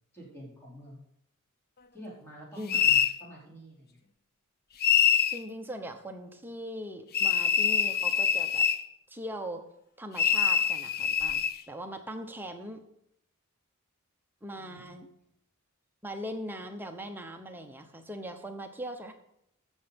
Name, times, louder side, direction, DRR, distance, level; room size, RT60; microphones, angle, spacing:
voice 1, 0.1-1.0 1.9-4.0 14.5-14.9, equal, 10° left, -5 dB, 4.3 m, -47 dB
sound 1, 2.7-3.2 4.8-5.4 7.1-8.8 10.2-11.6, left 8 dB, 45° left, 0.6 m, -24 dB
voice 2, 5.3-8.7 9.1-9.6 10.0-12.8 14.4-15.1 16.0-19.1, equal, 10° right, 5 dB, 1.0 m, -40 dB
14.5 x 6.8 x 5.3 m, 0.77 s
head